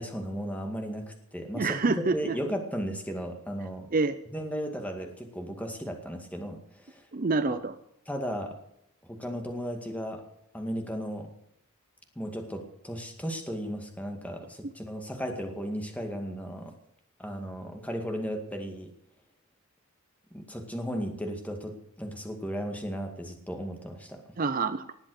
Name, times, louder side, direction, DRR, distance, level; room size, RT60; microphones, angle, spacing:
voice 1, 0.0-1.8 2.1-3.9 4.3-7.1 7.5-7.6 8.1-8.6 9.0-10.2 10.5-11.3 12.2-16.7 17.2-18.9 20.3-24.2, equal, 5° left, 4 dB, 2.0 m, -35 dB
voice 2, 1.5-2.3 3.9-4.2 7.1-7.7 24.4-24.9, right 3 dB, 40° right, 12 dB, 0.6 m, -27 dB
19.0 x 7.9 x 6.5 m, 0.78 s
head